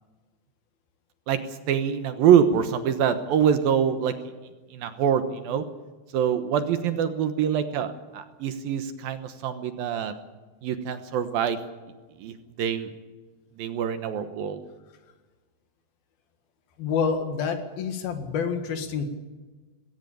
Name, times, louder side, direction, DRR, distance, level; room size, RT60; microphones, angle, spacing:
voice 1, 1.7-4.1 4.7-5.6 6.1-10.1 10.6-11.6 12.2-12.9 13.6-14.6, right 8 dB, 70° right, 9 dB, 2.7 m, -24 dB
voice 2, 16.8-19.2, left 6 dB, 65° left, 7 dB, 3.6 m, -28 dB
20.5 x 17.5 x 8.7 m, 1.3 s
omnidirectional pair, 4.7 m